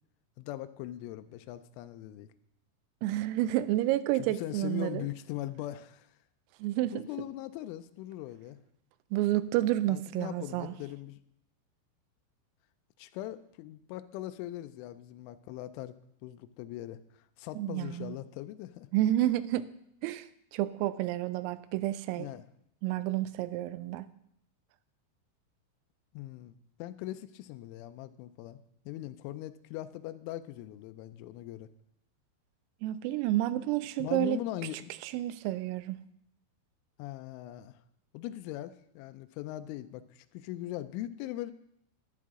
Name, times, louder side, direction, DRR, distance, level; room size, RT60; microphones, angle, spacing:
voice 1, 0.4-2.3 4.1-6.1 6.9-8.6 9.9-11.2 13.0-15.9 16.2-17.0 17.4-18.9 22.2-22.4 26.1-28.6 28.9-31.7 34.0-34.9 37.0-37.8 38.1-41.5, left 14 dB, 85° left, 10 dB, 2.8 m, -40 dB
voice 2, 3.0-5.1 6.6-7.1 9.1-10.7 17.6-18.2 18.9-19.7 20.0-20.3 20.5-22.3 22.8-24.1 32.8-34.4 35.1-36.0, right 14 dB, 90° right, 14 dB, 3.3 m, -30 dB
11.0 x 10.5 x 3.6 m, 0.75 s
omnidirectional pair, 5.9 m